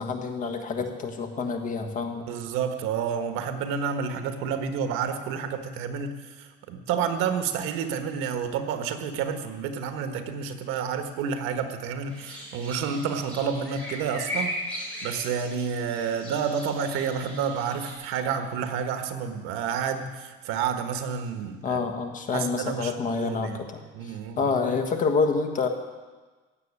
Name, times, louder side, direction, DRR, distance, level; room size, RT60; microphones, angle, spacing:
voice 1, 0.0-2.2 21.6-25.7, left 4 dB, 40° left, 5 dB, 1.5 m, -28 dB
voice 2, 2.3-21.8 22.3-23.6 23.9-24.5, right 6 dB, 80° right, 7 dB, 1.5 m, -30 dB
sound 1, 12.1-17.9, left 1 dB, 5° left, 5.9 m, -37 dB
16.0 x 7.4 x 9.7 m, 1.3 s
cardioid pair, 175°, 21 cm